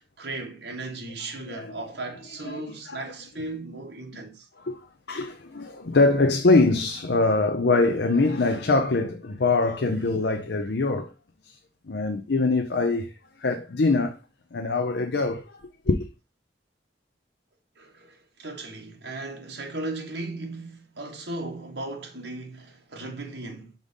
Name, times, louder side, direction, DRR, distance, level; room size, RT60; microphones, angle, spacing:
voice 1, 0.0-4.5 17.8-23.7, right 2 dB, 70° right, 1.5 m, -36 dB
voice 2, 1.2-1.7 2.4-3.0 4.6-4.8 5.1-11.1 11.9-13.1 13.4-14.2 14.5-15.4 15.9-16.0, left 3 dB, 65° left, 0.6 m, -23 dB
5.1 x 3.9 x 5.3 m
head